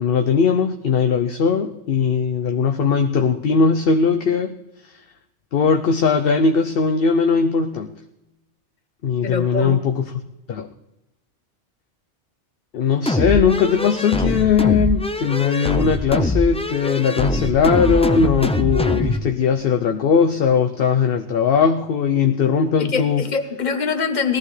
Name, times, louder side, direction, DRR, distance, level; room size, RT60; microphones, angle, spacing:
voice 1, 0.0-4.5 4.9-5.0 5.5-7.9 9.0-10.1 10.5-10.7 12.7-23.2, left 6 dB, 60° left, 6 dB, 0.8 m, -19 dB
voice 2, 9.2-9.8 22.8-24.4, left 5 dB, 40° left, 8 dB, 1.1 m, -24 dB
sound 1, 13.1-19.2, left 1 dB, 10° left, 0.3 m, -23 dB
19.5 x 14.5 x 3.2 m, 0.94 s
omnidirectional pair, 1.2 m